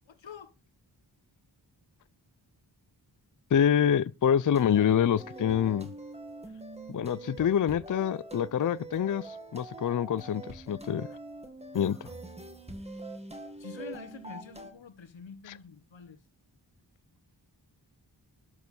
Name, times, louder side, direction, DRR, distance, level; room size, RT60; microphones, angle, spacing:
voice 1, 0.1-0.5 13.6-16.2, left 6 dB, 85° left, 1.3 m, -46 dB
voice 2, 3.5-5.9 6.9-11.1 11.7-12.0, left 9 dB, 45° left, 0.4 m, -26 dB
sound 1, 4.5-14.7, right 2 dB, 15° right, 1.9 m, -44 dB
12.0 x 4.6 x 7.0 m
wide cardioid pair, 90°, 44 cm